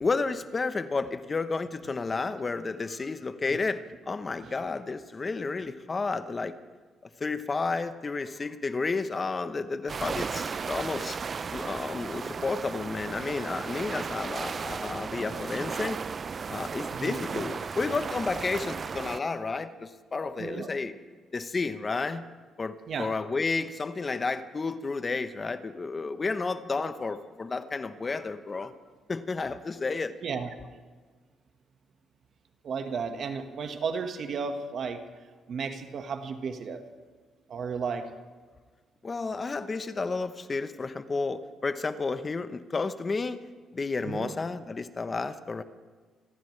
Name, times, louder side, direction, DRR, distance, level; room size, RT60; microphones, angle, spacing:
voice 1, 0.0-6.5 7.2-11.2 11.5-16.0 16.5-20.9 21.3-22.3 22.6-28.7 29.1-30.1 39.0-43.4 43.7-45.6, left 4 dB, 30° left, 11 dB, 0.9 m, -31 dB
sound 1, 9.9-19.2, right 5 dB, 40° right, 0.4 m, -35 dB
voice 2, 16.9-17.2 20.4-20.7 22.9-23.1 30.2-30.5 32.6-35.0 35.5-36.8 37.5-38.1 44.0-44.3, right 5 dB, 60° right, 7 dB, 1.5 m, -33 dB
28.0 x 14.0 x 3.3 m, 1.4 s
cardioid pair, 90°, 0 cm